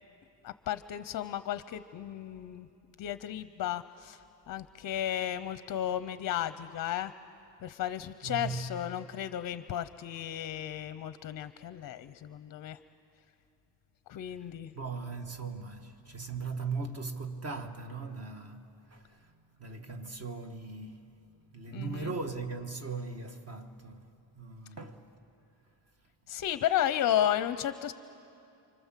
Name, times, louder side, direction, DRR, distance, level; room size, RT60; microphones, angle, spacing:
voice 1, 0.4-2.7 3.0-4.2 4.5-7.1 7.6-12.8 14.1-14.7 21.7-22.1 26.3-27.9, left 11 dB, 45° left, 0.6 m, -33 dB
voice 2, 8.2-8.8 14.1-21.1 21.5-25.1, right 4 dB, 35° right, 1.4 m, -39 dB
29.0 x 25.0 x 7.4 m
cardioid pair, 175°, 46 cm